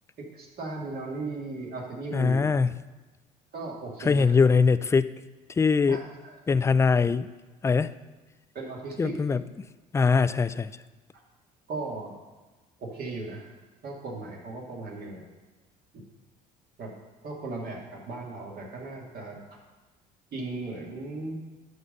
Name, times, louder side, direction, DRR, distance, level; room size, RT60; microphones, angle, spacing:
voice 1, 0.2-2.4 3.5-4.3 5.9-6.4 8.5-9.1 11.1-11.2 11.7-12.1 12.8-13.5 13.8-15.2 15.9-16.0 16.8-16.9 17.2-19.6 20.3-21.4, right 3 dB, 55° right, -2 dB, 2.4 m, -37 dB
voice 2, 2.1-2.7 4.0-5.2 5.6-6.0 6.5-7.3 7.6-7.9 9.0-9.4 9.9-10.7, left 5 dB, 15° left, 15 dB, 0.3 m, -22 dB
11.0 x 3.8 x 6.7 m, 1.2 s
supercardioid pair, 75°, 19 cm